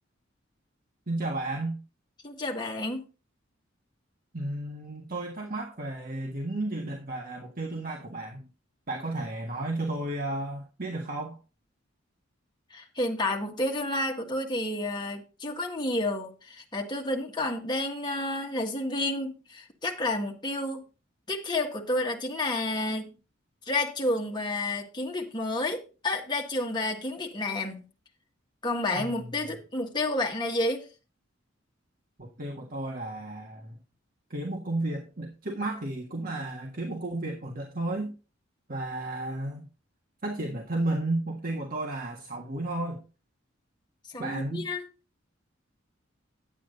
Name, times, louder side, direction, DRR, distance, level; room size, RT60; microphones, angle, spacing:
voice 1, 1.1-1.8 4.3-8.5 8.9-11.4 28.9-29.3 32.2-33.8 34.3-38.2 38.7-39.7 40.2-43.0 44.2-44.7, right 2 dB, 45° right, 1.6 m, -33 dB
voice 2, 2.2-3.1 12.7-20.8 21.3-23.1 23.7-27.8 28.6-30.9 44.1-44.8, left 2 dB, 20° left, 1.6 m, -30 dB
10.0 x 8.3 x 3.9 m
head